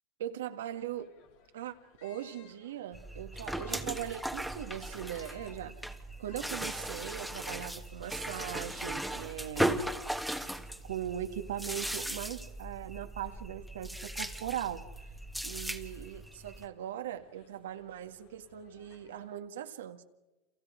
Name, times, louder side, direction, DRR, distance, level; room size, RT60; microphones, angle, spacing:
voice 1, 0.2-1.1 1.5-1.8 2.0-5.8 6.2-9.9 10.8-14.8 15.4-20.0, right 11 dB, 85° right, 1.6 m, -40 dB
sound 1, 0.7-19.4, left 7 dB, 75° left, 4.4 m, -63 dB
sound 2, 2.9-16.7, right 1 dB, ahead, 1.5 m, -38 dB
29.5 x 28.0 x 5.1 m
hypercardioid pair, 110°, 0 cm